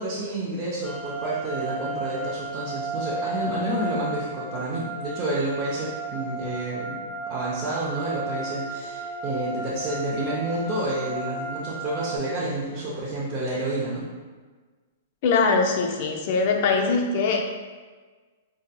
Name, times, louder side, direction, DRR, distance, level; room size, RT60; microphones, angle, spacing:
voice 1, 0.0-14.0, right 2 dB, 30° right, -9 dB, 0.6 m, -29 dB
sound 1, 0.8-12.2, right 2 dB, 10° left, 0.7 m, -34 dB
voice 2, 15.2-17.4, left 4 dB, 50° left, 3 dB, 0.4 m, -22 dB
3.7 x 2.7 x 2.2 m, 1.4 s
hypercardioid pair, 140°, 0 cm